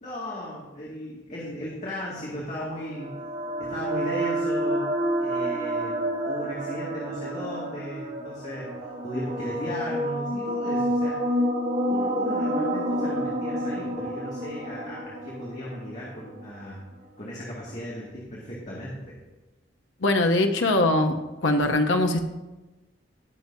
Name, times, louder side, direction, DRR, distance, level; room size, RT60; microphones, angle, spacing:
voice 1, 0.0-3.1 3.6-4.9 5.2-6.0 6.2-8.7 9.0-11.4 11.9-16.8 17.2-19.1, equal, 40° left, -6 dB, 2.2 m, -36 dB
sound 1, 2.3-16.5, equal, 70° right, 2.8 m, -29 dB
voice 2, 20.0-22.2, left 2 dB, 85° left, 4 dB, 0.9 m, -22 dB
18.5 x 6.8 x 2.7 m, 1.1 s
head